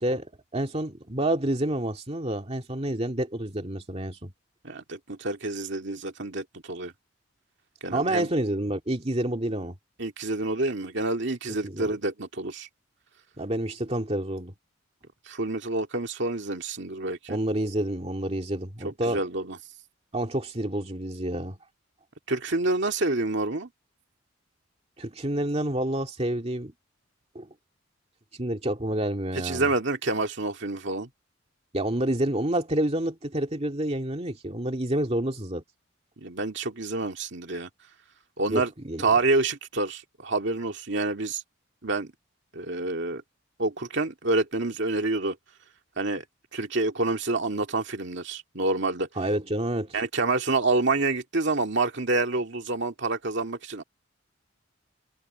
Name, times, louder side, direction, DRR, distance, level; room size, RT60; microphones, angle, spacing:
voice 1, 0.0-4.3 7.9-9.8 11.6-11.9 13.4-14.5 17.3-19.2 20.1-21.6 25.0-26.7 27.3-27.5 28.4-29.7 31.7-35.6 38.5-39.0 49.2-49.9, right 1 dB, 30° right, 2.2 m, -28 dB
voice 2, 4.6-6.9 7.8-8.3 10.0-12.7 15.3-17.4 18.8-19.6 22.3-23.7 29.4-31.1 36.2-37.7 38.4-38.7 39.0-41.4 41.8-42.1 42.5-43.2 43.6-45.4 46.0-46.2 46.5-49.1 49.9-53.8, right 2 dB, 55° right, 2.3 m, -28 dB
head